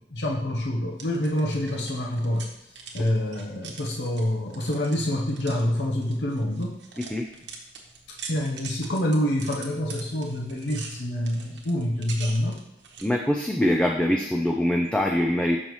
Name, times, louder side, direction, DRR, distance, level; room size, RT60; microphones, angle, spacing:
voice 1, 0.0-2.5 2.9-6.7 8.3-12.6, left 1 dB, 75° left, -1 dB, 0.8 m, -27 dB
sound 1, 0.9-13.1, right 5 dB, 80° right, 1.0 m, -43 dB
voice 2, 13.0-15.6, left 1 dB, 5° left, 1 dB, 0.3 m, -23 dB
6.8 x 5.5 x 3.1 m, 0.82 s
head